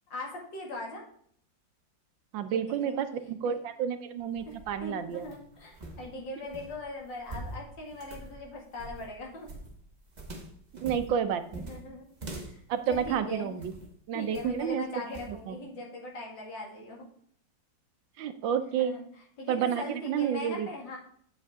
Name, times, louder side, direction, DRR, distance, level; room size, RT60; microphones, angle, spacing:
voice 1, 0.1-1.0 2.5-3.0 3.4-3.6 4.4-4.5 4.8-9.5 11.6-12.0 12.3-12.6 12.9-13.6 14.1-17.1 18.6-19.0 19.4-21.0, left 2 dB, 70° left, -1 dB, 2.8 m, -40 dB
voice 2, 2.3-5.3 10.8-11.6 12.7-13.7 14.1-14.8 15.3-15.6 18.2-18.9 19.5-20.7, right 8 dB, 75° right, 10 dB, 1.5 m, -30 dB
sound 1, 4.2-13.9 14.3-14.7 15.1-15.4, right 2 dB, 25° right, 1.2 m, -44 dB
8.2 x 7.6 x 3.5 m, 0.62 s
omnidirectional pair, 2.1 m